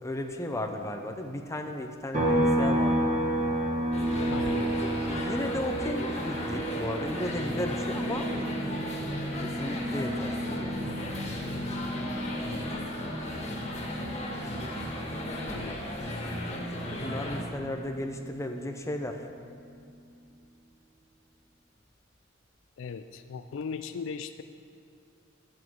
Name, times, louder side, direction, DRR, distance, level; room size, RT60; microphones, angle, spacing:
voice 1, 0.0-3.1 5.1-8.3 9.3-10.8 16.9-19.3, left 1 dB, 15° left, 4 dB, 0.7 m, -35 dB
sound 1, 2.1-15.7 16.0-18.2, right 1 dB, 35° right, 1.6 m, -32 dB
sound 2, 3.9-17.4, left 1 dB, 30° left, 1.6 m, -35 dB
voice 2, 4.3-5.2 15.5-15.8 22.8-24.4, left 5 dB, 65° left, 10 dB, 0.3 m, -38 dB
12.0 x 7.7 x 4.7 m, 2.5 s
head